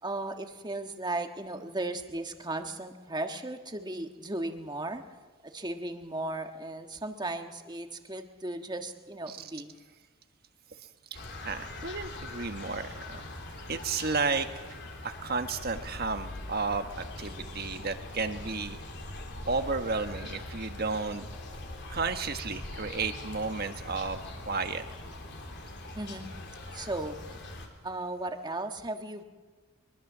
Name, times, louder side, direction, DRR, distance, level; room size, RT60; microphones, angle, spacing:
voice 1, 0.0-5.0 5.4-9.7 26.0-26.3 26.7-27.2 27.8-29.2, right 2 dB, 20° right, 6 dB, 1.5 m, -36 dB
sound 1, 11.1-27.7, left 1 dB, 55° left, 3.5 m, -42 dB
voice 2, 11.1-13.2 13.7-14.5 15.0-18.8 19.5-21.3 21.9-24.8, right 4 dB, 45° right, 7 dB, 1.5 m, -32 dB
23.5 x 22.5 x 7.4 m, 1.4 s
head